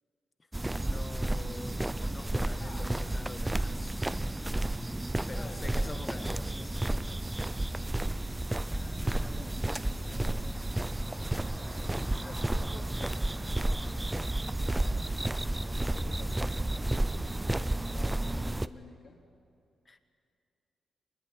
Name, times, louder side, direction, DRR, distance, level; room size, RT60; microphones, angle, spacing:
sound 1, 0.5-18.7, right 1 dB, 10° right, 0.6 m, -32 dB
voice 1, 0.8-4.0 5.3-6.8 19.8-20.0, left 3 dB, 25° left, 9 dB, 1.5 m, -46 dB
voice 2, 2.6-3.7 5.3-7.4 8.7-10.9 11.5-13.9 14.6-15.3 15.7-19.2, left 3 dB, 40° left, 1 dB, 3.9 m, -51 dB
25.0 x 21.0 x 9.7 m, 2.4 s
wide cardioid pair, 130°, 0 cm